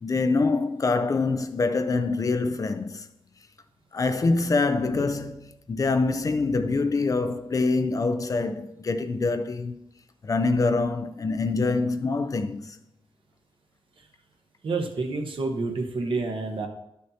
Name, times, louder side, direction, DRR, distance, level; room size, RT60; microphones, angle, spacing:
voice 1, 0.0-3.1 3.9-9.9 10.2-12.8, left 3 dB, 40° left, 0.4 m, -25 dB
voice 2, 14.6-16.7, right 3 dB, 65° right, 1.2 m, -28 dB
12.0 x 6.3 x 2.8 m
wide cardioid pair, 170°, 9 cm